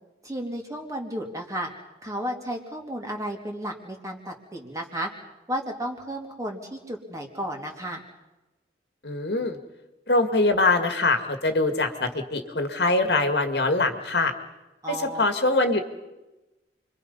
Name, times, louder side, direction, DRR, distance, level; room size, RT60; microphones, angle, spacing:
voice 1, 0.2-1.7 2.0-5.1 5.5-8.0 14.8-15.2, equal, 20° right, 1 dB, 3.1 m, -33 dB
voice 2, 9.0-9.6 10.1-14.3 14.9-15.8, left 2 dB, 65° left, 6 dB, 2.1 m, -23 dB
29.5 x 24.0 x 5.6 m, 1.0 s
head